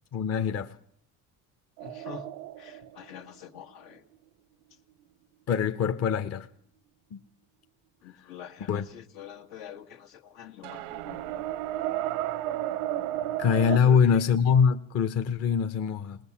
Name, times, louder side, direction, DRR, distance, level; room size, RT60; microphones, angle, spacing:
voice 1, 0.1-0.8 5.5-6.5 7.1-7.2 8.7-8.9 13.4-16.2, left 7 dB, 45° left, 1.0 m, -24 dB
voice 2, 1.8-2.3 2.6-4.0 8.0-11.3 13.8-14.2, left 9 dB, 80° left, 2.0 m, -46 dB
sound 1, 1.8-4.2 10.6-13.8, right 13 dB, 90° right, 0.8 m, -33 dB
20.5 x 20.0 x 7.3 m
cardioid pair, 110°, 36 cm